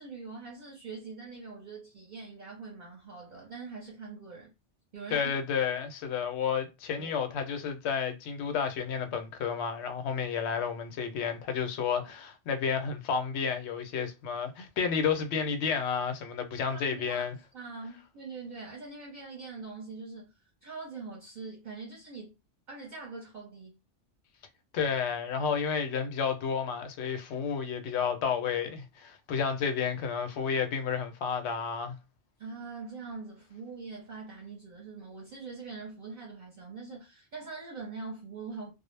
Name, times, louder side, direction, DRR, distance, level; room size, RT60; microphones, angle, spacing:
voice 1, 0.0-4.5 4.9-5.3 7.0-7.1 16.7-17.2 17.5-20.3 20.6-22.3 22.7-23.8 32.4-38.7, right 4 dB, 50° right, 0.7 m, -43 dB
voice 2, 5.1-17.3 24.7-32.0, left 6 dB, 75° left, 0.8 m, -31 dB
2.0 x 2.0 x 3.1 m
omnidirectional pair, 1.2 m